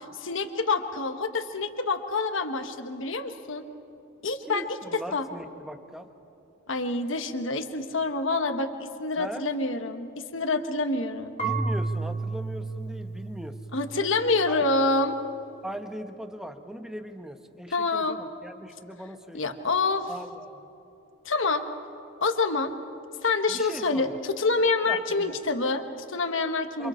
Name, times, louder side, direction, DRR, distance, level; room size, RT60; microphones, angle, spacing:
voice 1, 0.2-3.6 4.2-4.6 5.1-5.3 6.7-11.4 13.7-15.2 17.7-18.2 19.3-20.1 21.2-21.7 22.2-22.7 23.2-26.9, left 3 dB, 65° left, 7 dB, 1.3 m, -27 dB
voice 2, 4.4-6.1 9.2-9.5 11.4-13.6 14.5-14.6 15.6-19.6 20.1-20.7 23.5-24.2 24.9-25.4 26.8-26.9, equal, ahead, 6 dB, 1.0 m, -39 dB
Marimba xylophone / Wood, 11.4-14.3, right 3 dB, 30° left, 1.7 m, -31 dB
29.0 x 26.0 x 4.4 m, 2.9 s
head